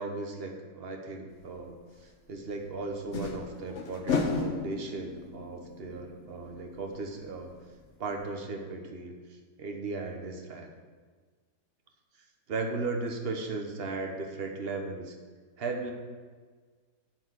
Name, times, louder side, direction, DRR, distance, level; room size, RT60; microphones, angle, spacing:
voice 1, 0.0-1.8 2.3-7.5 8.0-9.1 9.6-10.7 12.5-15.1 15.6-15.9, right 3 dB, 40° right, 3 dB, 1.2 m, -36 dB
sound 1, 1.6-1.7 3.0-7.5 7.7-7.8 8.2-8.3, left 4 dB, 45° left, 1.2 m, -34 dB
10.5 x 4.8 x 8.0 m, 1.5 s
omnidirectional pair, 1.9 m